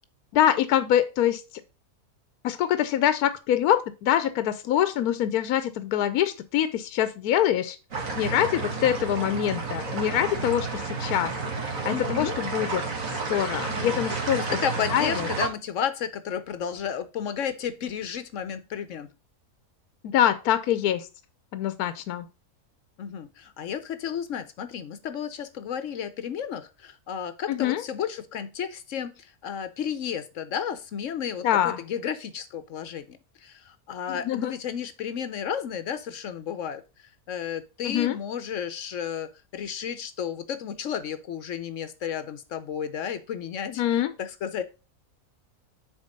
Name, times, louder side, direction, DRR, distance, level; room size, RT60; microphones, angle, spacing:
voice 1, 0.3-1.4 2.4-7.8 8.2-11.3 11.8-14.6 14.9-15.3 20.0-21.1 21.5-22.3 27.5-27.8 31.4-31.8 34.1-34.5 37.8-38.2 43.7-44.1, left 11 dB, 80° left, 13 dB, 1.1 m, -25 dB
sound 1, 7.9-15.5, right 4 dB, 60° right, 2.0 m, -31 dB
voice 2, 11.9-12.4 13.7-14.0 14.5-19.1 23.0-36.8 37.3-44.6, left 8 dB, 65° left, 11 dB, 0.9 m, -32 dB
7.1 x 4.3 x 5.2 m, 0.30 s
omnidirectional pair, 1.6 m